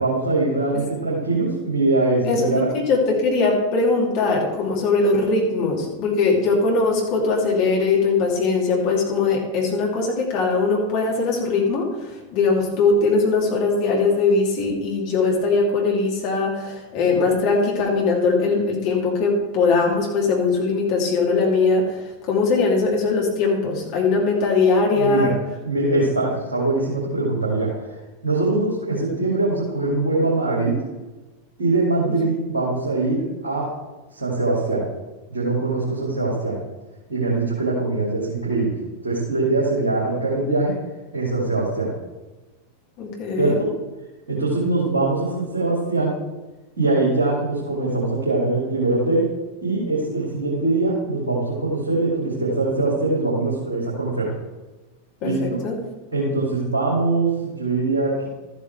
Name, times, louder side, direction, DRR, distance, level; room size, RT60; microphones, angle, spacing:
voice 1, 0.0-2.7 24.9-25.3 25.6-27.9 28.2-30.7 31.6-33.7 34.1-34.8 35.3-36.6 37.1-38.7 39.0-40.7 41.1-41.9 43.4-43.7 44.3-46.2 46.8-49.3 49.6-54.3 55.2-55.6 56.1-58.3, right 2 dB, 70° right, -6 dB, 2.5 m, -22 dB
voice 2, 2.3-25.3 43.0-43.6 55.2-55.8, left 3 dB, 45° left, -2 dB, 2.9 m, -20 dB
13.5 x 8.2 x 3.4 m, 1.2 s
figure-of-eight pair, 90°, 0 cm